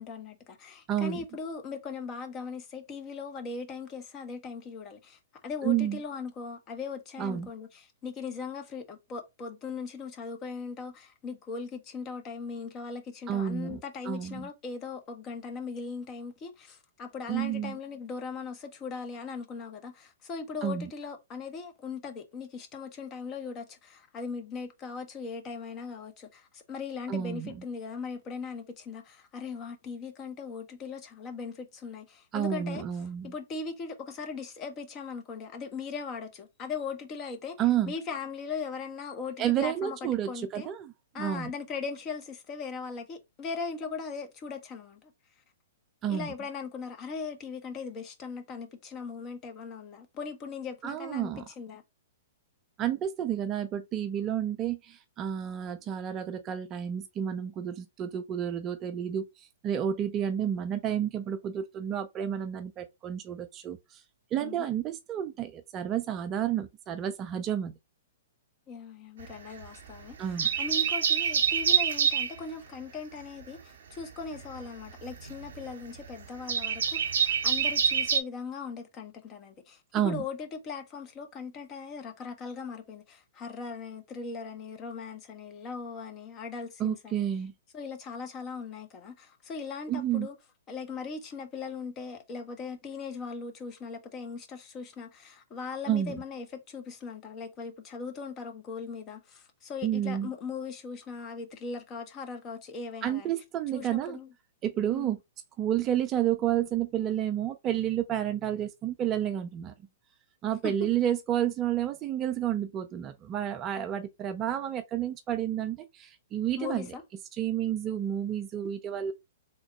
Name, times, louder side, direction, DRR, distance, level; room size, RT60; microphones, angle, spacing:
voice 1, 0.0-32.8 33.2-37.6 37.9-40.7 41.1-45.1 46.1-51.8 64.4-64.7 68.7-87.2 87.7-90.3 90.7-103.3 103.7-104.3 104.9-105.1 110.6-110.7 113.7-113.9 116.6-117.0, left 5 dB, 30° left, 0.9 m, -39 dB
voice 2, 0.9-1.2 5.6-6.0 7.2-7.5 13.3-13.8 14.0-14.5 17.3-17.8 20.6-20.9 27.1-27.6 32.3-33.3 37.6-37.9 39.4-41.5 46.0-46.3 50.8-51.4 52.8-64.0 64.3-67.7 70.2-70.5 79.9-80.3 86.8-87.5 89.9-90.3 95.9-96.2 99.8-100.3 103.0-104.2 104.6-105.2 105.6-109.7 110.4-116.9 117.3-119.1, right 10 dB, 30° right, 0.4 m, -30 dB
sound 1, 69.2-69.9 70.2-72.4 74.0-78.2, right 7 dB, 70° right, 0.8 m, -26 dB
3.5 x 2.2 x 4.1 m
figure-of-eight pair, 115°, 0 cm